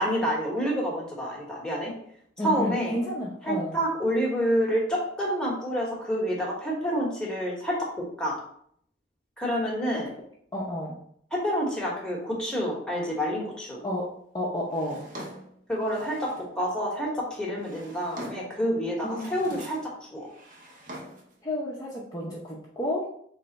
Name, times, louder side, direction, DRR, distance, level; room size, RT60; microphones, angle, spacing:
voice 1, 0.0-1.9 2.4-3.0 3.5-8.4 9.4-10.1 11.3-13.8 15.7-20.3, equal, 5° left, -4 dB, 1.1 m, -28 dB
voice 2, 2.4-3.8 10.5-11.0 13.8-14.1 14.3-15.0 19.0-19.6 21.4-23.1, left 1 dB, 20° left, -6 dB, 0.6 m, -31 dB
Drawer open or close, 14.7-16.5 17.3-18.6 19.0-19.9 20.2-21.4, right 1 dB, 45° right, 0.8 m, -44 dB
3.4 x 3.3 x 4.0 m, 0.66 s
head